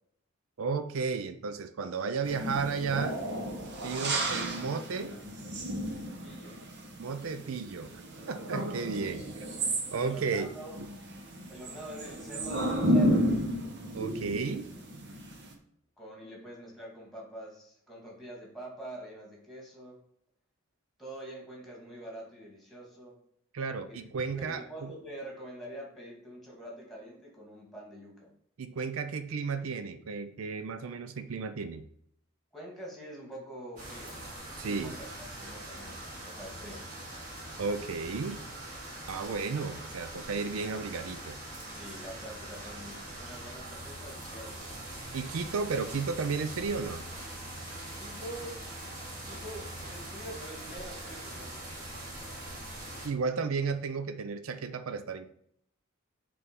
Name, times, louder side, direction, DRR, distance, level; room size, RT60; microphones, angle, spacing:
voice 1, 0.6-3.2 3.8-5.2 7.0-7.9 8.3-9.4 9.9-10.5 10.8-10.9 13.9-14.7 23.5-24.9 28.6-31.8 34.6-34.9 37.6-38.4 39.1-41.4 45.1-47.1 53.0-55.3, right 5 dB, 75° right, 10 dB, 0.5 m, -33 dB
sound 1, 2.2-15.5, right 1 dB, 55° right, 1.1 m, -33 dB
voice 2, 4.1-5.1 6.2-6.6 8.5-8.6 9.9-10.8 11.5-13.3 16.0-19.9 21.0-23.2 23.9-24.0 24.3-28.3 32.5-34.2 34.6-35.1 35.4-36.9 41.8-44.8 48.0-48.6 49.2-51.7, right 1 dB, ahead, -3 dB, 2.1 m, -45 dB
sound 2, 33.8-53.1, right 1 dB, 35° right, 2.5 m, -42 dB
6.9 x 3.5 x 5.2 m, 0.71 s
head